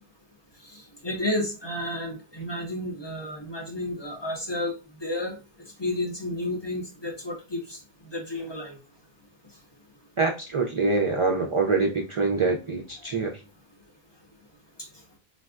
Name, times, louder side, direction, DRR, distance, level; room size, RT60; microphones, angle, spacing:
voice 1, 0.7-4.7 5.0-5.4 5.8-7.8 8.1-8.8, left 1 dB, 30° left, 1 dB, 0.8 m, -31 dB
voice 2, 10.2-13.4, right 3 dB, 50° right, 2 dB, 0.3 m, -25 dB
3.8 x 2.2 x 2.4 m, 0.33 s
omnidirectional pair, 1.0 m